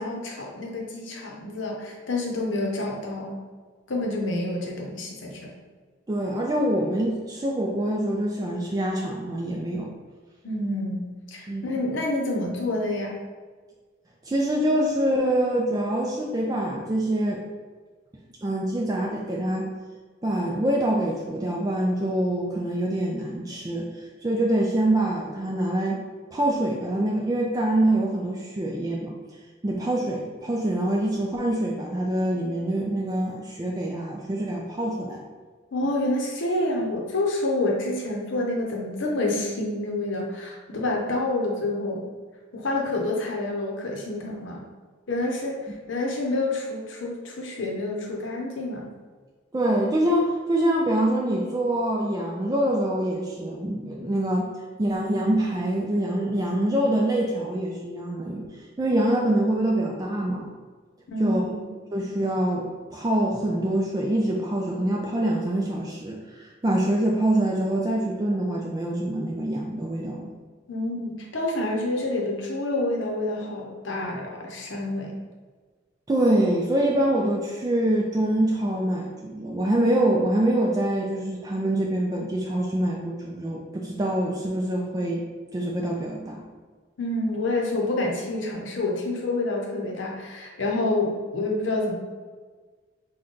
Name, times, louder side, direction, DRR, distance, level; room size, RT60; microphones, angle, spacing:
voice 1, 0.0-3.4 3.9-5.5 10.4-13.2 35.7-42.1 42.5-44.6 45.1-48.9 61.1-61.7 70.7-75.2 87.0-91.9, left 2 dB, 75° left, 0 dB, 0.7 m, -28 dB
voice 2, 6.1-9.9 11.5-11.6 14.3-17.4 18.4-19.7 20.2-23.9 24.2-26.0 26.3-29.1 29.6-35.2 49.5-54.5 54.8-58.5 58.8-60.5 61.2-61.4 61.9-70.3 76.1-85.2 85.5-86.5, right 1 dB, 20° right, -2 dB, 0.3 m, -25 dB
3.8 x 2.2 x 3.7 m, 1.4 s
head